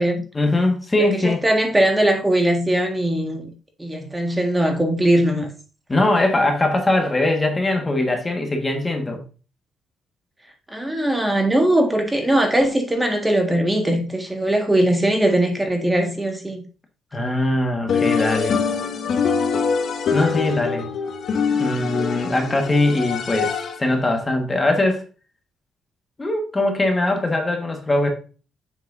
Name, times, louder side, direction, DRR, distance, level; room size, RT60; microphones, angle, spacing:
voice 1, 0.3-1.4 5.9-9.2 17.1-18.6 20.1-20.9 21.6-25.0 26.2-28.1, left 2 dB, 20° left, 1.5 m, -21 dB
voice 2, 1.0-3.5 3.8-5.5 10.7-16.6, right 1 dB, 10° right, 1.6 m, -20 dB
sound 1, 17.9-24.0, left 6 dB, 60° left, 1.0 m, -24 dB
7.4 x 5.9 x 2.6 m
cardioid pair, 90°, 0 cm